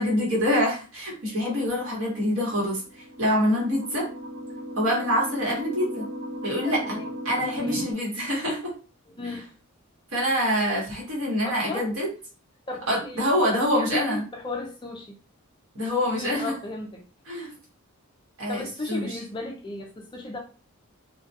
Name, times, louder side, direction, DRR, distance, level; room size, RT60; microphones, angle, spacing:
voice 1, 0.0-4.0 4.7-6.0 6.4-7.0 7.2-8.7 9.2-9.4 10.1-12.1 12.9-14.2 15.7-16.5 17.3-17.5 18.4-19.2, equal, 65° right, 1.1 m, -25 dB
sound 1, 2.8-7.9, equal, 30° right, 1.2 m, -37 dB
voice 2, 6.6-7.1 7.4-7.9 9.2-9.4 11.4-12.0 12.7-15.2 16.1-17.0 18.5-20.4, left 2 dB, 20° left, 0.3 m, -35 dB
2.2 x 2.2 x 2.6 m
head